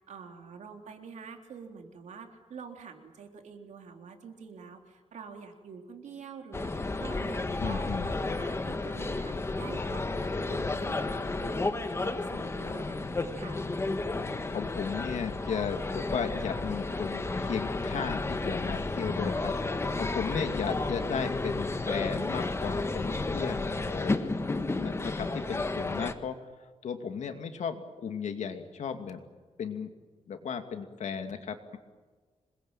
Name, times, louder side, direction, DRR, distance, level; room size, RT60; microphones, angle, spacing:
voice 1, 0.1-13.6, right 5 dB, 90° right, 4 dB, 3.6 m, -47 dB
sound 1, 6.5-26.1, left 3 dB, 20° left, 1.5 m, -32 dB
voice 2, 7.6-8.1 14.5-24.3 24.7-29.2 29.6-29.9 30.3-31.8, left 6 dB, 80° left, 6 dB, 2.6 m, -35 dB
27.0 x 21.5 x 9.0 m, 1.4 s
wide cardioid pair, 150°, 12 cm